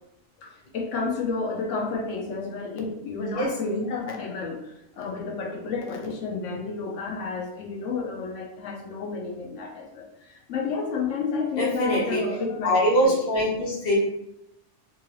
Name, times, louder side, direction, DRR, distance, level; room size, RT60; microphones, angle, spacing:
voice 1, 0.4-13.2, left 4 dB, 80° left, 1 dB, 1.1 m, -31 dB
voice 2, 3.3-3.7 11.6-12.2 12.6-13.9, equal, 35° left, -6 dB, 1.1 m, -23 dB
3.6 x 2.7 x 3.0 m, 0.84 s
omnidirectional pair, 1.2 m